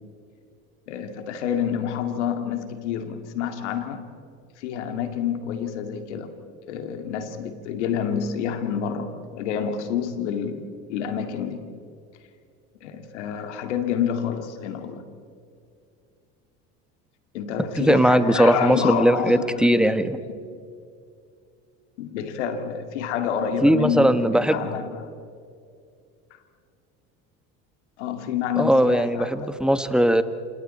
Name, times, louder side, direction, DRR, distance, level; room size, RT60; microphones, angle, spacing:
voice 1, 0.9-4.1 4.6-6.3 6.7-10.6 10.9-11.7 12.8-15.0 17.3-19.9 22.0-25.1 28.0-29.5, left 8 dB, 85° left, 7 dB, 2.3 m, -28 dB
voice 2, 17.8-20.2 23.6-24.7 28.6-30.2, right 1 dB, ahead, 11 dB, 1.4 m, -19 dB
28.0 x 27.5 x 4.3 m, 2.4 s
hypercardioid pair, 80°, 34 cm